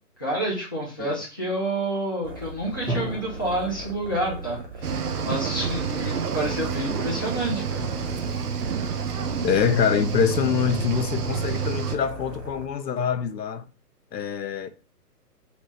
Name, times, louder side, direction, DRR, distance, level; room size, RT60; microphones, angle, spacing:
voice 1, 0.2-4.6 4.8-7.8, right 1 dB, 15° left, 0.5 m, -29 dB
sound 1, 2.2-12.7, right 2 dB, 30° right, 0.8 m, -38 dB
Drum, 2.9-4.8, equal, 15° right, 1.4 m, -35 dB
Cricket / Waves surf, 4.8-12.0, right 7 dB, 70° right, 0.6 m, -29 dB
voice 2, 9.4-13.7 14.1-14.7, left 7 dB, 90° left, 0.6 m, -25 dB
3.0 x 3.0 x 3.2 m
figure-of-eight pair, 130°, 48 cm